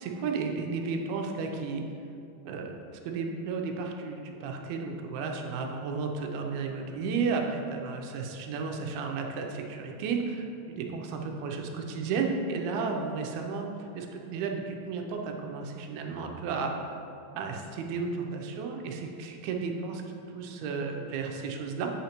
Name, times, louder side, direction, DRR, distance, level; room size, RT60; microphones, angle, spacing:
voice 1, 0.0-1.8 2.4-16.9 17.4-20.0 20.3-21.9, right 4 dB, 85° right, 2 dB, 2.5 m, -33 dB
8.9 x 5.6 x 2.9 m, 2.7 s
omnidirectional pair, 4.5 m